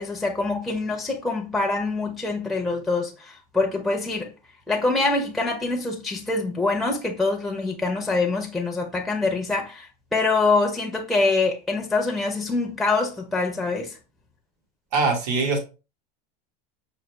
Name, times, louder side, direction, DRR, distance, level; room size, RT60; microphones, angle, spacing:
voice 1, 0.0-4.3 4.7-14.0, left 3 dB, ahead, 0.5 m, -25 dB
voice 2, 14.9-15.6, right 3 dB, 70° right, 1.4 m, -22 dB
5.0 x 2.3 x 3.1 m
supercardioid pair, 140°, 21 cm